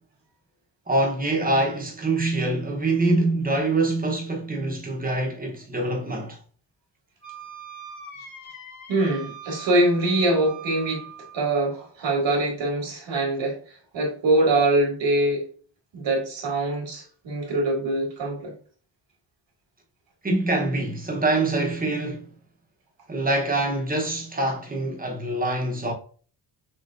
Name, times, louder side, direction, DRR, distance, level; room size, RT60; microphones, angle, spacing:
voice 1, 0.9-6.4 20.2-22.2 23.1-25.9, right 2 dB, 20° right, 1.0 m, -25 dB
Wind instrument woodwind instrument, 7.2-11.6, right 5 dB, 40° left, 2.0 m, -42 dB
voice 2, 8.9-11.1 11.3-13.6 13.9-15.5 15.9-18.5, right 2 dB, 80° right, 2.4 m, -23 dB
6.3 x 3.0 x 2.5 m
wide cardioid pair, 175°, 44 cm